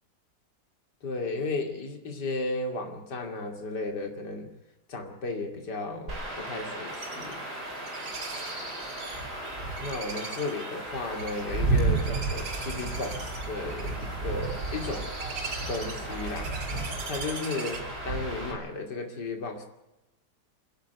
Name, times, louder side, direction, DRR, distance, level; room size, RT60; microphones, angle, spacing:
voice 1, 1.0-4.5 4.9-7.4 9.8-15.1 15.7-16.6 17.0-19.7, left 3 dB, 70° left, 4 dB, 3.1 m, -34 dB
Chirp tweet / Wind / Stream, 6.1-18.5, right 3 dB, 65° right, 5.5 m, -33 dB
sound 1, 6.9-17.8, right 4 dB, 85° right, 3.1 m, -42 dB
29.0 x 10.5 x 9.4 m, 0.95 s
omnidirectional pair, 1.9 m